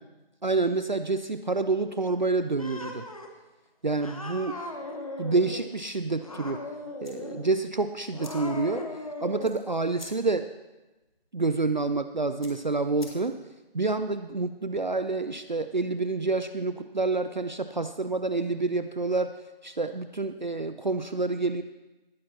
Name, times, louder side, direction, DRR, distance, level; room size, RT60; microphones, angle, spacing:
voice 1, 0.4-3.0 3.8-4.5 5.2-6.6 7.0-8.9 9.2-10.5 11.3-13.4 13.7-19.3 19.6-21.6, right 3 dB, 50° right, 10 dB, 0.5 m, -28 dB
Cat, 2.6-3.3 4.0-5.7 6.2-7.5 8.0-9.6, left 2 dB, 35° left, 1.1 m, -38 dB
sound 1, 7.0-13.6, left 2 dB, 75° left, 3.6 m, -52 dB
19.0 x 10.5 x 2.9 m, 1.1 s
figure-of-eight pair, 170°, 30 cm